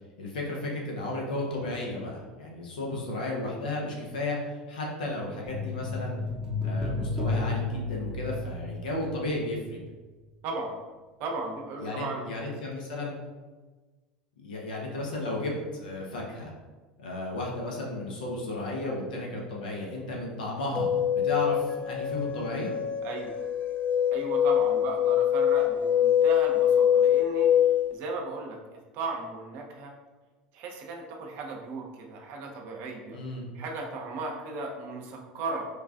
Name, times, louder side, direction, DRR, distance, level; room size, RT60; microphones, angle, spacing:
voice 1, 0.2-6.2 6.6-9.8 11.8-13.2 14.4-16.5 17.0-22.7 33.1-33.5, left 2 dB, 75° left, -2 dB, 0.7 m, -34 dB
sound 1, 5.5-9.9 10.2-10.3, left 3 dB, 15° right, 0.7 m, -32 dB
voice 2, 10.4-10.8 11.2-12.3 12.6-12.7 23.0-23.3 24.1-27.5 27.9-28.6 28.9-29.9 30.5-33.2 33.5-35.7, right 3 dB, 55° right, 1 dB, 0.7 m, -36 dB
sound 2, 20.7-27.9, left 10 dB, 30° left, 0.4 m, -24 dB
4.7 x 2.4 x 2.3 m, 1.3 s
hypercardioid pair, 80°, 5 cm